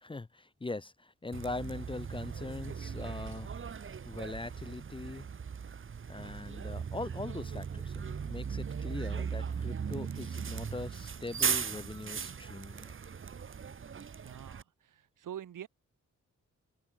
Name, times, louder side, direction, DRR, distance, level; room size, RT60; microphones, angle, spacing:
voice 1, 0.0-3.5 4.0-5.3 6.1-12.9, left 2 dB, 15° left, 0.5 m, -41 dB
Bus, 1.3-14.6, right 6 dB, 40° right, 1.1 m, -38 dB
voice 2, 14.2-15.7, right 10 dB, 90° right, 1.3 m, -45 dB
wide cardioid pair, 130°, 31 cm